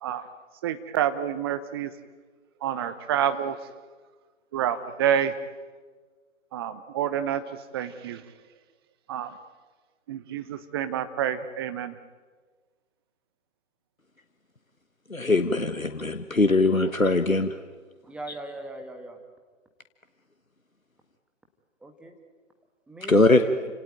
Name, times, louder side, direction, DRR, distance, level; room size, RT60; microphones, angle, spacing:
voice 1, 0.6-1.9 2.6-3.6 4.5-5.3 6.5-7.4 7.7-8.2 9.1-9.3 10.1-12.0, right 9 dB, 20° right, 11 dB, 0.9 m, -28 dB
voice 2, 15.1-17.5 23.1-23.4, left 2 dB, 90° left, 8 dB, 1.5 m, -21 dB
voice 3, 18.0-19.2 21.8-22.1 22.9-23.5, right 1 dB, 5° right, 3 dB, 1.5 m, -40 dB
29.5 x 18.0 x 9.4 m, 1.4 s
figure-of-eight pair, 135°, 40 cm